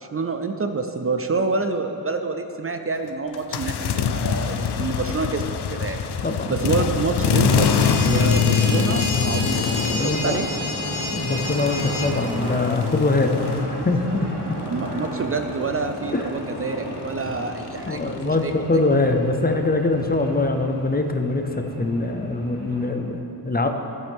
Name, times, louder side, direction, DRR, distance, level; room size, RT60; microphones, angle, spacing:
voice 1, 0.1-6.0 6.5-9.6 10.0-10.5 14.7-18.8, right 4 dB, 35° right, 6 dB, 0.5 m, -27 dB
sound 1, 3.3-14.1 14.4-18.5, left 6 dB, 85° left, 0.6 m, -25 dB
sound 2, 7.4-12.1, left 2 dB, 45° left, 1.0 m, -30 dB
sound 3, 8.6-22.9, right 1 dB, 75° right, 2.2 m, -35 dB
voice 2, 9.9-10.4 11.1-13.3 13.8-14.3 16.1-16.2 17.9-21.4 21.8-23.7, left 2 dB, 25° left, 5 dB, 0.6 m, -23 dB
15.0 x 8.1 x 3.6 m, 2.9 s
wide cardioid pair, 125°, 38 cm